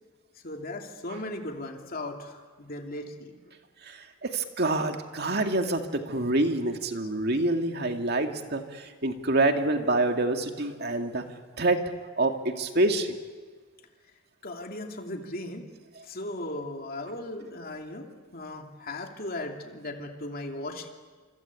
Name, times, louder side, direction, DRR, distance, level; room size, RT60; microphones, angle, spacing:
voice 1, 0.4-3.3 14.4-15.7 16.0-20.9, left 1 dB, 45° left, 3 dB, 2.8 m, -37 dB
voice 2, 4.2-8.6 9.0-11.2 11.6-11.8 12.2-13.1, right 2 dB, 50° right, 5 dB, 2.3 m, -26 dB
26.5 x 25.5 x 8.4 m, 1.5 s
head